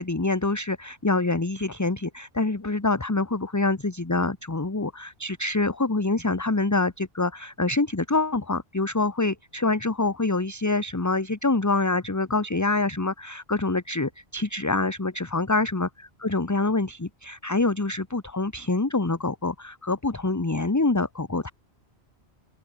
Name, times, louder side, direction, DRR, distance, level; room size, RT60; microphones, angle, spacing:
voice 1, 0.0-21.5, left 3 dB, 15° left, 1.0 m, -26 dB
open air
omnidirectional pair, 1.1 m